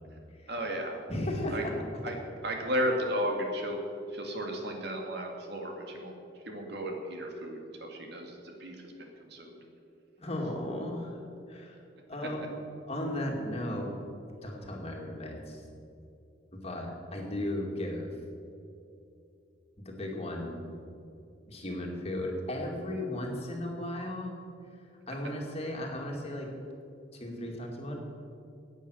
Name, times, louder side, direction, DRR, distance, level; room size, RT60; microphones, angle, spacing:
voice 1, 0.5-1.0 1.5-1.6 2.0-3.8 4.1-6.2 6.4-9.6, equal, 60° right, 2 dB, 2.2 m, -34 dB
voice 2, 1.1-1.7 10.2-11.2 11.5-11.8 12.1-14.0 14.4-15.6 16.5-18.1 19.8-20.6 21.4-24.4 25.1-26.5 27.1-28.0, left 1 dB, 35° left, 0 dB, 2.2 m, -35 dB
16.0 x 9.1 x 6.4 m, 2.6 s
head